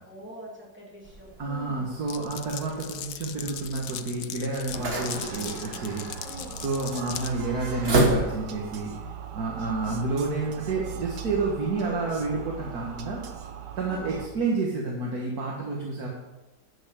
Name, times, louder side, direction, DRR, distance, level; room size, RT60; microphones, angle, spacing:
voice 1, 0.0-1.9 6.2-6.6 11.7-12.2 13.8-14.1, equal, 5° right, -4 dB, 2.8 m, -43 dB
sound 1, 1.0-8.8, right 1 dB, 35° right, 1.7 m, -31 dB
voice 2, 1.4-6.3 6.6-8.9 9.3-13.2 13.8-16.1, right 3 dB, 55° right, -2 dB, 2.0 m, -30 dB
Glass, 2.1-7.3, left 10 dB, 70° left, 0.7 m, -38 dB
sound 2, 5.0-14.3, right 8 dB, 70° right, 1.5 m, -40 dB
11.5 x 6.9 x 6.8 m, 1.1 s
omnidirectional pair, 2.0 m